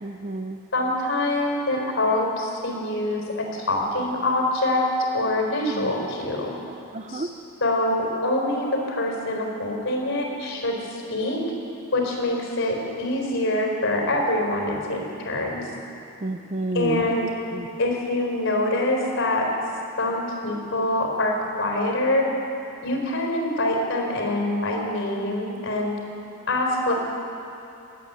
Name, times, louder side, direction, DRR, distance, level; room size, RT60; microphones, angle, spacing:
voice 1, 0.0-0.6 5.5-5.9 6.9-7.3 16.2-17.0 17.5-17.7, right 2 dB, 30° right, 9 dB, 0.6 m, -30 dB
voice 2, 0.7-3.2 3.5-4.9 5.1-6.5 7.1-7.3 7.6-10.7 11.1-11.4 11.9-15.7 16.7-17.3 17.8-19.4 20.0-22.3 22.8-26.0 26.5-26.9, left 1 dB, 55° left, 0 dB, 4.2 m, -25 dB
20.0 x 8.6 x 8.5 m, 3.0 s
head